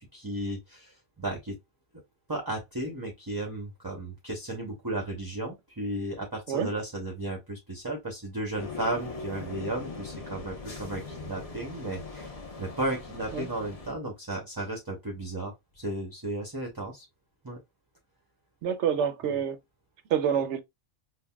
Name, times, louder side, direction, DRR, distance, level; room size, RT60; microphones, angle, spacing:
voice 1, 0.1-1.6 2.3-12.3 12.6-17.0 17.4-17.6, right 1 dB, 20° right, 0.7 m, -34 dB
sound 1, 8.6-13.9, left 3 dB, 35° left, 0.8 m, -40 dB
voice 2, 18.6-19.6 20.1-20.6, right 8 dB, 80° right, 1.0 m, -27 dB
5.6 x 2.2 x 2.3 m
omnidirectional pair, 1.2 m